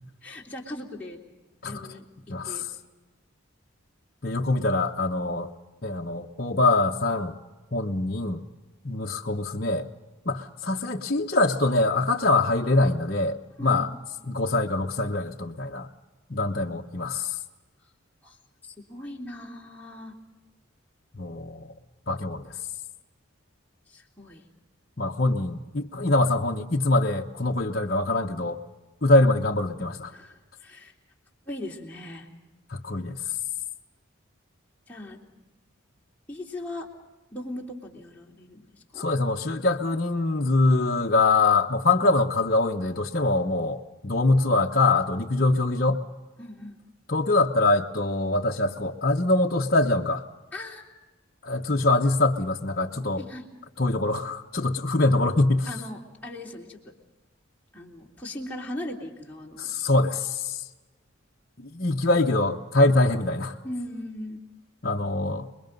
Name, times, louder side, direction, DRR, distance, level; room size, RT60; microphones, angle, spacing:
voice 1, 0.2-1.2 1.6-2.1 2.4-2.7 13.6-13.9 18.2-18.4 18.6-20.2 23.9-24.4 30.1-30.9 31.5-32.3 34.9-35.2 36.3-36.9 37.3-39.1 46.4-46.8 50.5-50.9 53.2-53.5 55.7-56.9 57.7-59.7 63.6-64.4, left 1 dB, 10° left, -4 dB, 3.2 m, -39 dB
voice 2, 2.3-2.7 4.2-5.5 5.8-7.3 7.7-8.4 8.8-9.8 10.3-13.9 14.3-15.9 16.3-17.4 21.1-21.6 22.1-22.6 25.0-28.6 29.0-30.1 32.7-33.2 39.0-46.0 47.1-50.2 51.4-53.2 53.8-55.7 59.6-60.6 61.6-63.6 64.8-65.5, left 2 dB, 45° left, -1 dB, 1.0 m, -24 dB
29.0 x 21.5 x 5.4 m, 1.2 s
head